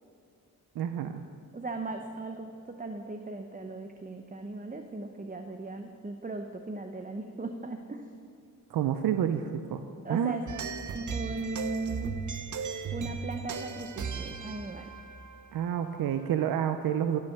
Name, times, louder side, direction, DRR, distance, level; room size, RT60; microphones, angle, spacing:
voice 1, 0.8-1.2 8.7-9.8 10.1-10.4 15.5-17.2, right 9 dB, 90° right, 8 dB, 0.6 m, -29 dB
voice 2, 1.5-8.0 10.0-12.2 12.9-14.9, right 2 dB, 25° right, 5 dB, 0.9 m, -38 dB
sound 1, 10.5-16.3, right 6 dB, 60° right, 0.8 m, -37 dB
14.5 x 7.3 x 6.7 m, 2.5 s
cardioid pair, 60°, 35 cm